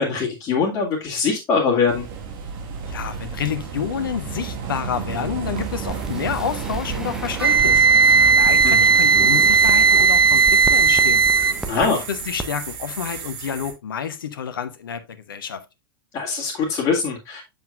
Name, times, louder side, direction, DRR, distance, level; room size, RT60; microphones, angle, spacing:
voice 1, 0.0-2.1 8.6-8.8 11.7-12.0 16.1-17.4, left 5 dB, 25° left, 2.2 m, -22 dB
sound 1, 1.9-13.7, right 6 dB, 40° right, 1.7 m, -32 dB
voice 2, 2.9-7.9 8.2-11.2 11.7-15.6, left 8 dB, 65° left, 1.0 m, -29 dB
sound 2, 5.6-11.9 12.2-12.5 12.7-12.8, right 3 dB, 5° right, 0.9 m, -35 dB
Wind instrument woodwind instrument, 7.4-11.6, right 5 dB, 85° right, 0.5 m, -15 dB
8.0 x 7.1 x 2.5 m
figure-of-eight pair, 95°, 12 cm